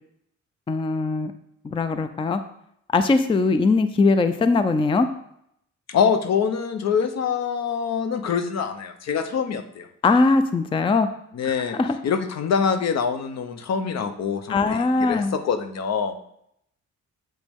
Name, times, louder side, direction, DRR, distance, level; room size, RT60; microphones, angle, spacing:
voice 1, 0.7-1.3 1.6-2.4 2.9-5.1 10.0-11.1 11.4-12.0 14.5-15.3, left 3 dB, 20° left, 10 dB, 0.4 m, -21 dB
voice 2, 5.9-9.9 11.3-11.8 12.0-16.2, left 6 dB, 60° left, 8 dB, 0.8 m, -25 dB
7.5 x 5.1 x 3.5 m, 0.74 s
cardioid pair, 95°, 30 cm